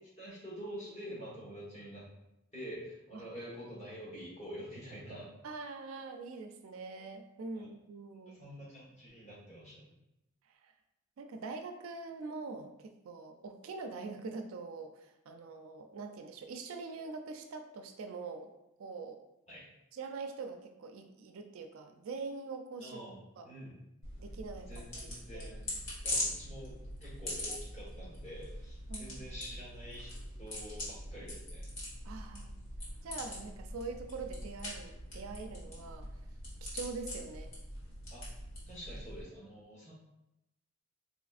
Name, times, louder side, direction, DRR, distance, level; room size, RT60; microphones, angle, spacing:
voice 1, 0.2-2.1 2.5-5.3 7.5-7.7 8.3-10.0 19.5-19.7 22.8-23.2 23.4-23.8 24.6-25.7 26.0-30.1 30.4-31.7 38.1-38.2 38.7-39.9, equal, 30° left, -6 dB, 1.4 m, -47 dB
voice 2, 5.4-8.4 10.6-10.7 11.2-18.5 18.8-19.2 19.9-23.0 23.4-23.5 24.2-25.5 28.9-29.2 32.0-32.5 33.0-36.1 36.6-37.5, right 4 dB, 70° right, 5 dB, 0.4 m, -44 dB
sound 1, 24.0-39.2, left 1 dB, 60° left, 1.4 m, -42 dB
4.1 x 3.0 x 2.4 m, 0.89 s
head